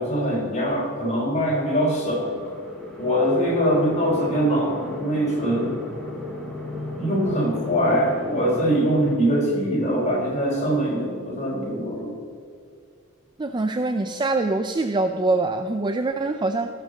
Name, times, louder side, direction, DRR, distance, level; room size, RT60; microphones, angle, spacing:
voice 1, 0.0-2.4 3.0-5.8 7.0-12.2, equal, 30° left, -3 dB, 3.9 m, -23 dB
sound 1, 1.6-9.2, left 1 dB, 5° left, 2.3 m, -35 dB
voice 2, 13.4-16.7, right 2 dB, 20° right, 7 dB, 0.4 m, -24 dB
18.0 x 6.6 x 6.4 m, 2.2 s
head